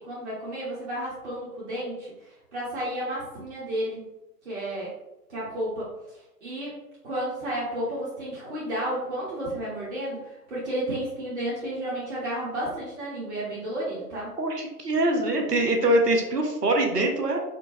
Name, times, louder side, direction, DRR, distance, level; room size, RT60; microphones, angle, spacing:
voice 1, 0.0-4.0 4.4-4.9 5.3-6.8 7.0-14.4, right 1 dB, 45° right, -8 dB, 1.2 m, -32 dB
voice 2, 14.4-17.4, right 1 dB, 80° right, 3 dB, 0.8 m, -23 dB
4.5 x 2.1 x 2.6 m, 0.95 s
figure-of-eight pair, 125°, 47 cm